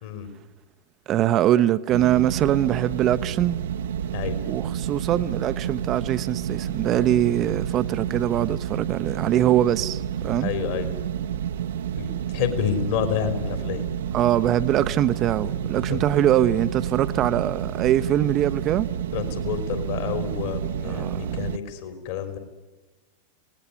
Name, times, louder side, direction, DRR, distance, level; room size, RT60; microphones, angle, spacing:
voice 1, 1.1-3.6 4.5-10.5 14.1-18.9 20.8-21.4, right 12 dB, 35° right, 0.8 m, -23 dB
sound 1, 1.9-21.6, right 9 dB, 60° right, 0.9 m, -30 dB
voice 2, 10.4-10.9 12.0-13.8 15.9-16.1 19.1-22.4, left 9 dB, 50° left, 3.8 m, -29 dB
27.5 x 19.0 x 9.8 m
figure-of-eight pair, 90°, 0 cm